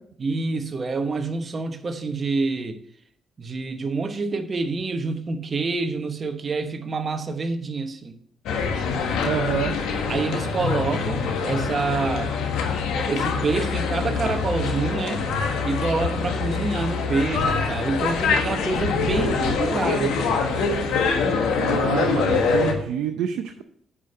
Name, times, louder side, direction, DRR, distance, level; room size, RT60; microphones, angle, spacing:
voice 1, 0.2-2.8 3.4-8.2 10.1-12.3 12.9-15.3 15.6-20.4, right 3 dB, 40° right, 7 dB, 1.0 m, -27 dB
sound 1, 8.5-22.7, left 5 dB, 90° left, 1.3 m, -24 dB
voice 2, 9.2-9.7 21.6-23.6, right 9 dB, 85° right, 7 dB, 0.5 m, -27 dB
8.6 x 5.1 x 5.4 m, 0.65 s
cardioid pair, 90°, 0 cm